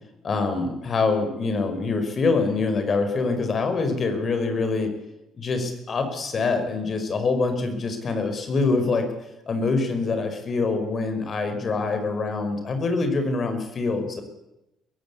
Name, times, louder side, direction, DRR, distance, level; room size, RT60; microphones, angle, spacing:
voice 1, 0.2-4.9 5.3-9.1 9.5-14.2, left 3 dB, 45° left, 7 dB, 5.1 m, -25 dB
22.0 x 15.5 x 8.4 m, 0.93 s
supercardioid pair, 65°, 0 cm